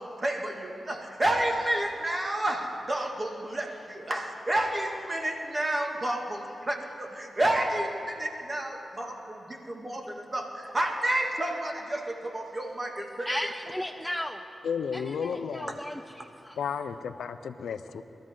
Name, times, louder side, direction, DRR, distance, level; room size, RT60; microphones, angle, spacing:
voice 1, 0.0-10.0 10.3-13.4, right 1 dB, 35° right, 2.0 m, -30 dB
voice 2, 13.3-14.4 14.9-16.6, equal, 5° left, 0.5 m, -35 dB
voice 3, 14.6-15.7 16.6-18.0, left 6 dB, 85° left, 0.5 m, -33 dB
22.0 x 13.5 x 3.8 m
cardioid pair, 50°, 0 cm